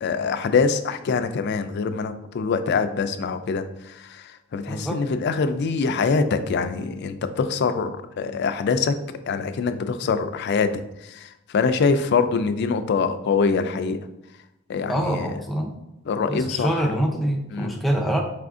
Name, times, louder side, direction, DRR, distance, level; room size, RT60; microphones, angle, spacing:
voice 1, 0.0-9.0 9.3-14.0 14.7-15.4 16.1-16.9 17.5-17.7, left 5 dB, 55° left, 9 dB, 0.3 m, -24 dB
voice 2, 4.7-5.0 14.9-15.7 16.3-18.2, right 1 dB, ahead, 1 dB, 0.5 m, -25 dB
4.8 x 2.5 x 3.5 m, 0.89 s
head